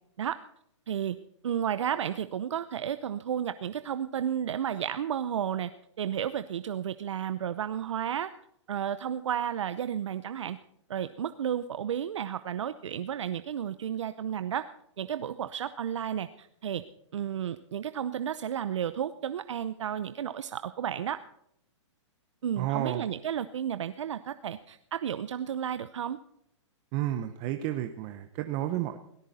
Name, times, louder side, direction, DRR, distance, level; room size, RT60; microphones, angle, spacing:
voice 1, 1.4-5.7 6.0-8.3 8.7-10.6 10.9-14.7 15.0-16.8 17.1-21.2 22.4-26.2, right 9 dB, 70° right, 13 dB, 0.8 m, -32 dB
voice 2, 22.6-23.1 26.9-29.0, right 13 dB, 30° right, 8 dB, 0.9 m, -31 dB
18.0 x 14.5 x 4.2 m, 0.75 s
hypercardioid pair, 150°, 16 cm